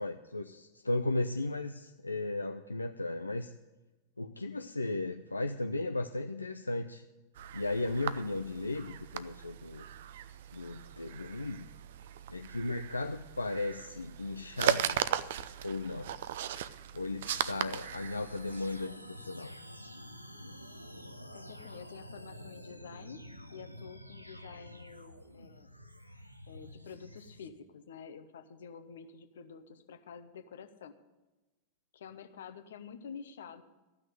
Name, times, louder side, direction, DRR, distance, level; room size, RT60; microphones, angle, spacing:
voice 1, 0.0-3.6 4.2-7.1 7.5-9.8 10.5-11.7 12.3-15.0 15.6-16.1 16.9-19.5, left 2 dB, 80° left, 6 dB, 0.4 m, -35 dB
sound 1, 7.4-18.9, right 11 dB, 55° right, 0.5 m, -38 dB
sound 2, 17.3-27.5, equal, 90° right, 0.8 m, -49 dB
voice 2, 21.3-23.2 23.5-25.7 26.5-30.9 31.9-33.6, left 6 dB, 60° left, 9 dB, 1.0 m, -49 dB
14.0 x 6.2 x 9.2 m, 1.1 s
figure-of-eight pair, 90°, 0 cm